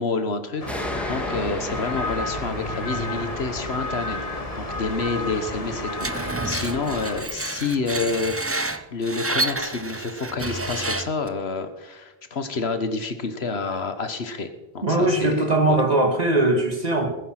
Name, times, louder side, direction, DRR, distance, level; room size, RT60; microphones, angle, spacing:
voice 1, 0.0-8.6 8.9-14.5 14.7-15.4 15.7-15.8, left 4 dB, 90° left, 9 dB, 1.6 m, -28 dB
sound 1, 0.6-7.2, left 1 dB, 35° left, 1.8 m, -31 dB
sound 2, 0.7-7.8, equal, ahead, 1.8 m, -37 dB
Screech, 6.0-11.3, right 2 dB, 15° right, 0.6 m, -29 dB
voice 2, 14.8-17.2, right 2 dB, 40° right, 4 dB, 2.2 m, -20 dB
19.5 x 10.0 x 6.0 m, 1.1 s
omnidirectional pair, 1.0 m